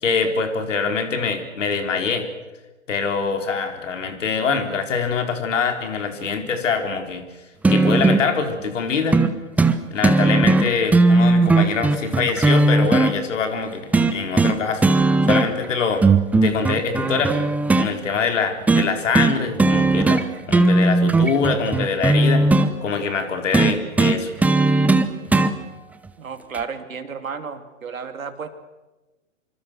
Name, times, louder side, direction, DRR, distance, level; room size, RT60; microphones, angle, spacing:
voice 1, 0.0-2.3 2.9-7.2 7.7-9.2 9.9-14.8 15.2-16.0 16.4-17.4 17.7-22.5 22.8-24.3, left 5 dB, 65° left, 6 dB, 4.5 m, -24 dB
sound 1, 7.6-8.3 9.1-9.3 9.6-9.8 10.0-13.1 13.9-14.6 14.8-15.7 16.0-17.9 18.7-18.9 19.1-19.3 19.6-20.2 20.5-22.7 23.5-25.5 26.5-26.6, right 3 dB, 5° right, 0.8 m, -17 dB
voice 2, 26.2-28.5, right 6 dB, 80° right, 8 dB, 3.0 m, -32 dB
26.0 x 25.0 x 6.5 m, 1.1 s
hypercardioid pair, 125°, 40 cm